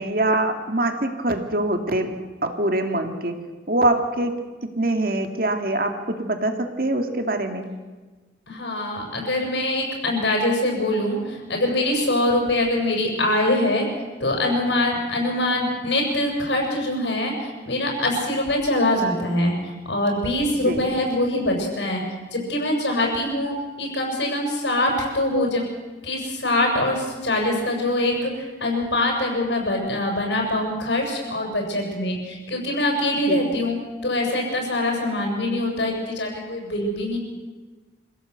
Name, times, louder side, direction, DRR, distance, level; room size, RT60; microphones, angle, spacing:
voice 1, 0.0-2.1 2.4-3.3 3.7-4.3 4.8-7.7 20.6-20.8 33.3-33.5, right 1 dB, 50° right, 5 dB, 2.3 m, -23 dB
voice 2, 8.5-13.9 14.2-22.0 22.3-25.6 26.0-33.8 34.0-37.2, left 1 dB, 75° left, 1 dB, 7.4 m, -23 dB
26.5 x 16.5 x 8.2 m, 1.3 s
head